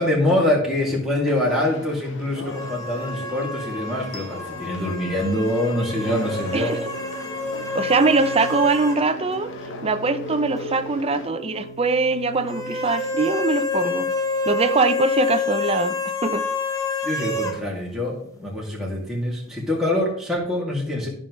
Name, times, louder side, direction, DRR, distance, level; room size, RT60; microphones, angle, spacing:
voice 1, 0.0-6.8 17.0-21.1, left 1 dB, ahead, -5 dB, 2.5 m, -24 dB
Conversation, 1.2-11.3, left 2 dB, 55° left, 1.1 m, -38 dB
sound 1, 2.5-9.0 9.3-9.4 12.5-17.6, left 3 dB, 15° left, 0.9 m, -28 dB
sound 2, 4.1-15.1, right 2 dB, 80° left, 1.0 m, -41 dB
voice 2, 7.7-9.5 9.8-14.1 14.5-16.0 16.2-16.4, right 3 dB, 25° right, 10 dB, 0.5 m, -22 dB
13.5 x 5.5 x 3.2 m, 0.66 s
head